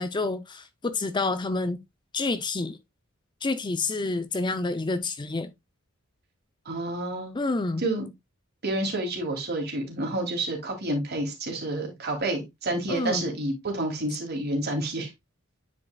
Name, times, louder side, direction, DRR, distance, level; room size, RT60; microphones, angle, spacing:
voice 1, 0.0-1.8 2.1-2.8 3.4-5.5 7.3-7.8 12.9-13.3, left 3 dB, 20° left, 0.5 m, -28 dB
voice 2, 6.6-7.3 7.8-8.1 8.6-15.1, right 1 dB, 50° right, 2.7 m, -29 dB
9.7 x 4.8 x 2.3 m
head